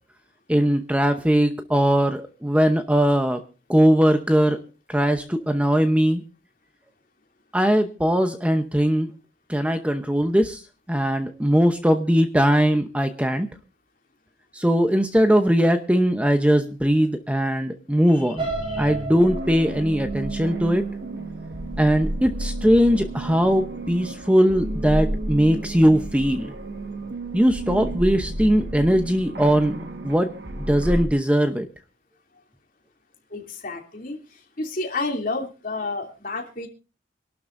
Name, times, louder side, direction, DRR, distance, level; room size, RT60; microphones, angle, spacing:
voice 1, 0.5-3.4 3.7-4.6 4.9-6.2 7.5-9.1 9.5-10.6 10.9-13.5 14.5-18.5 18.8-20.8 21.8-26.5 27.3-29.8 30.0-30.3 30.6-31.7, equal, 5° right, 7 dB, 0.8 m, -20 dB
sound 1, 18.4-22.3 22.8-23.1 23.5-23.6, right 3 dB, 30° right, 3.3 m, -35 dB
sound 2, 18.4-31.1, right 1 dB, 65° right, 1.6 m, -31 dB
voice 2, 33.3-34.2 34.6-36.7, left 3 dB, 50° left, 2 dB, 3.0 m, -30 dB
26.0 x 12.0 x 2.6 m, 0.33 s
head